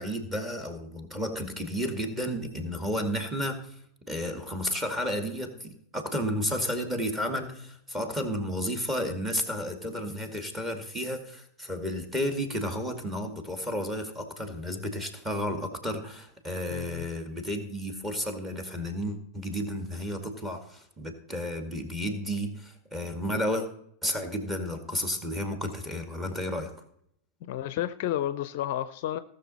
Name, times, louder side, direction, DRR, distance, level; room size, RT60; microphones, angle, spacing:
voice 1, 0.0-3.8 4.1-23.7 24.0-26.7, equal, 10° right, 5 dB, 2.1 m, -32 dB
voice 2, 16.7-17.1 27.4-29.2, left 12 dB, 50° left, 14 dB, 0.5 m, -31 dB
18.0 x 6.6 x 4.2 m, 0.70 s
figure-of-eight pair, 90°, 0 cm